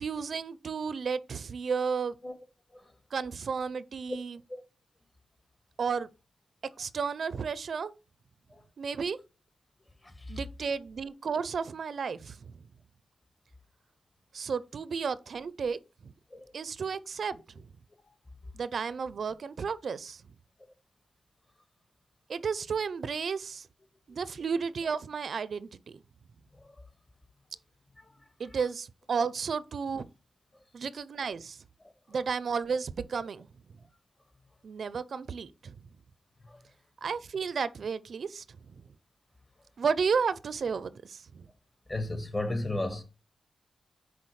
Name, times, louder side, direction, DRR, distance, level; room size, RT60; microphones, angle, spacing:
voice 1, 0.0-2.1 3.1-4.4 5.8-6.1 6.8-7.9 8.8-9.2 10.3-12.5 14.3-15.8 16.0-16.1 16.5-17.4 18.5-20.2 22.3-23.7 24.1-26.0 28.4-30.1 30.7-31.6 32.1-33.5 34.6-35.7 37.0-38.4 39.8-41.5, right 5 dB, 65° right, 0.4 m, -32 dB
voice 2, 10.0-10.4 16.3-16.5 18.0-18.2 26.5-26.8 28.0-28.6 29.1-29.2 30.5-30.6 31.8-32.2 36.4-36.6 41.9-43.0, left 2 dB, 30° left, 1.5 m, -37 dB
9.8 x 4.1 x 3.1 m
cardioid pair, 95°, 0 cm